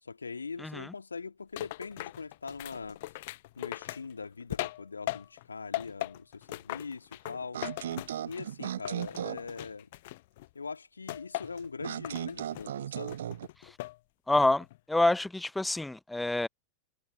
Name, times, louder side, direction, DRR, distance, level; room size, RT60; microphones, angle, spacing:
voice 1, 0.0-3.0 3.6-7.6 8.2-9.9 10.5-13.2, left 4 dB, 75° left, 2.6 m, -42 dB
voice 2, 0.6-0.9 13.6-13.8 14.3-16.5, left 2 dB, 5° left, 0.6 m, -28 dB
sound 1, 1.6-5.5 5.7-8.5 8.8-10.5 11.1-11.7 12.0-12.7 13.1-14.0 14.4-14.8, left 18 dB, 50° left, 0.8 m, -39 dB
sound 2, 7.5-9.5 11.8-13.5, right 10 dB, 60° right, 0.8 m, -36 dB
figure-of-eight pair, 90°, 0 cm